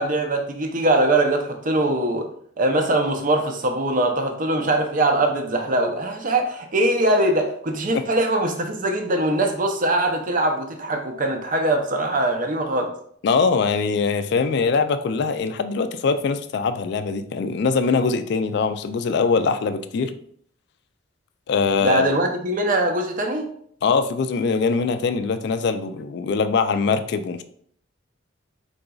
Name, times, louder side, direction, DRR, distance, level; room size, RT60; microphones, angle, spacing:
voice 1, 0.0-2.3 2.6-12.9 21.8-23.5, right 1 dB, 45° right, 4 dB, 0.6 m, -22 dB
voice 2, 13.2-20.1 21.5-22.0 23.8-27.4, left 4 dB, 60° left, 10 dB, 0.3 m, -22 dB
3.9 x 3.8 x 2.3 m, 0.62 s
head